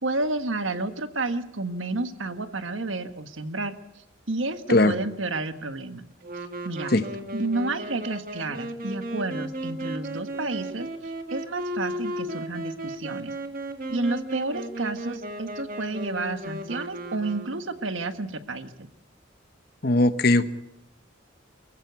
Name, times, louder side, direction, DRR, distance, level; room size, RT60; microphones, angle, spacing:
voice 1, 0.0-3.8 4.3-6.1 6.6-6.9 7.3-13.3 13.9-18.9, right 2 dB, 85° right, 9 dB, 1.5 m, -30 dB
Wind instrument woodwind instrument, 6.2-17.9, right 1 dB, 45° right, 1.8 m, -35 dB
voice 2, 19.8-20.5, left 2 dB, 50° left, 12 dB, 1.0 m, -19 dB
23.5 x 15.0 x 8.2 m, 0.88 s
head